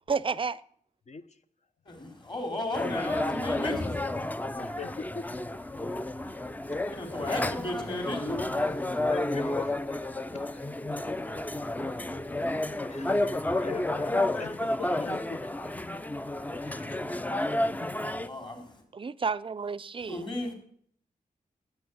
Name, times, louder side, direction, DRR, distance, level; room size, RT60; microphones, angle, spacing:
voice 1, 0.1-0.6 18.9-20.2, right 5 dB, 35° right, 0.5 m, -31 dB
voice 2, 1.9-4.2 6.9-9.0 18.2-18.8 20.0-20.5, left 1 dB, 30° left, 4.4 m, -35 dB
sound 1, 2.7-18.3, left 1 dB, 10° left, 0.5 m, -31 dB
voice 3, 4.6-5.2 9.1-10.0 10.3-10.6 12.8-15.7 16.6-17.0, left 6 dB, 50° left, 1.0 m, -41 dB
12.5 x 9.3 x 9.5 m
wide cardioid pair, 105°, 15 cm